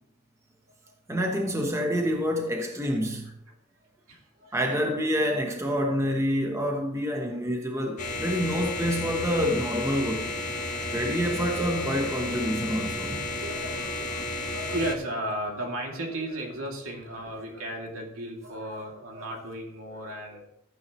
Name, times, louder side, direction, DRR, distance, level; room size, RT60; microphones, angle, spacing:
voice 1, 1.1-3.3 4.5-10.3 10.9-13.3, equal, 15° right, 1.0 m, -27 dB
voice 2, 4.1-4.6 7.2-7.4 7.7-7.9 10.6-11.4 13.4-20.5, right 1 dB, 75° right, 2.7 m, -35 dB
sound 1, 8.0-14.9, left 2 dB, 35° left, 1.6 m, -32 dB
14.5 x 8.9 x 3.1 m
head